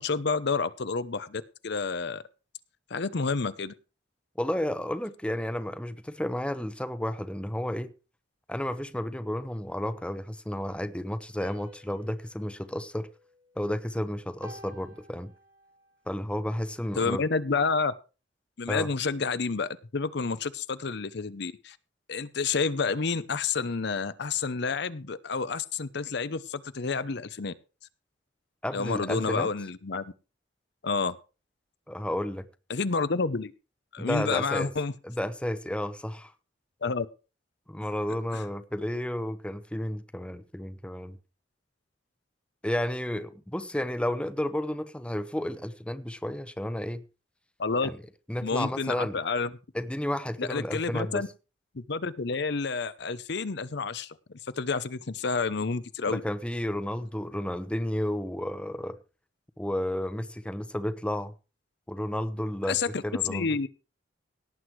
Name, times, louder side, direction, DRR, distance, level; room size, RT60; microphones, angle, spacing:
voice 1, 0.0-2.2 2.9-3.7 17.0-17.9 18.6-21.8 22.1-27.5 28.7-30.1 30.8-31.2 32.7-33.5 33.9-34.9 36.8-37.1 38.3-38.4 47.6-47.9 48.4-49.5 50.4-51.3 51.7-54.2 54.6-56.2 62.7-63.7, left 4 dB, 65° left, 0.8 m, -29 dB
voice 2, 4.4-7.9 8.5-13.1 13.6-15.3 16.1-17.2 18.7-18.9 28.6-29.5 31.9-32.5 34.0-34.7 35.0-36.3 37.7-41.2 42.6-47.1 47.8-48.0 48.3-49.2 49.7-51.3 56.1-59.0 59.6-61.3 61.9-62.8 63.0-63.5, left 1 dB, 5° left, 0.8 m, -32 dB
sound 1, 11.4-13.9 14.4-16.0, right 1 dB, 55° right, 2.9 m, -52 dB
17.5 x 7.9 x 4.7 m
head